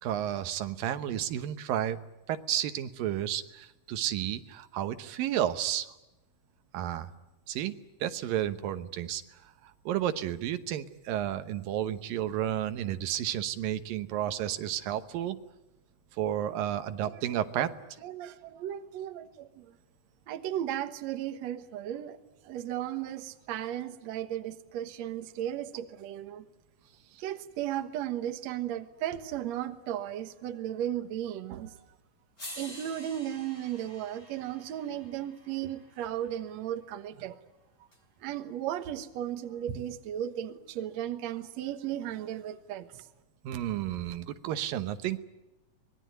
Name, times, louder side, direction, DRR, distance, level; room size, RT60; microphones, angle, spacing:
voice 1, 0.0-2.0 2.3-5.9 6.7-7.1 7.5-7.7 8.0-9.2 9.6-15.4 16.2-17.7 43.4-45.2, right 11 dB, 90° right, 10 dB, 2.8 m, -32 dB
voice 2, 18.0-19.7 20.3-22.2 22.4-26.4 27.2-31.8 32.6-37.4 38.2-42.9, right 11 dB, 60° right, 9 dB, 2.2 m, -35 dB
sound 1, 31.8-31.9 32.4-36.6 37.9-38.0, left 1 dB, 15° left, 3.4 m, -48 dB
25.0 x 21.0 x 9.3 m, 0.98 s
omnidirectional pair, 3.9 m